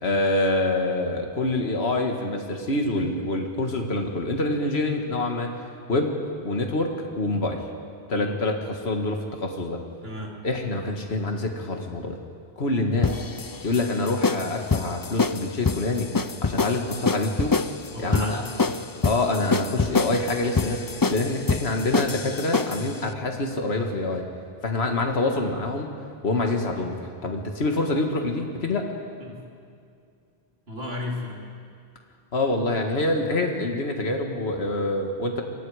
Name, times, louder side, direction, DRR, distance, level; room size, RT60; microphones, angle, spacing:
voice 1, 0.0-5.5 5.9-6.1 6.4-7.6 8.1-8.6 8.8-9.8 10.4-12.2 12.6-13.2 13.6-16.1 16.4-17.6 18.0-18.4 19.0-24.2 24.6-25.9 26.2-26.9 27.2-28.9 32.3-35.4, left 2 dB, 70° left, 3 dB, 2.0 m, -26 dB
voice 2, 10.0-10.4 17.9-18.8 29.2-29.4 30.7-31.4, left 1 dB, 65° right, -2 dB, 4.0 m, -34 dB
sound 1, 13.0-22.9, left 4 dB, 30° left, 0.4 m, -26 dB
27.5 x 24.0 x 4.9 m, 2.3 s
omnidirectional pair, 1.1 m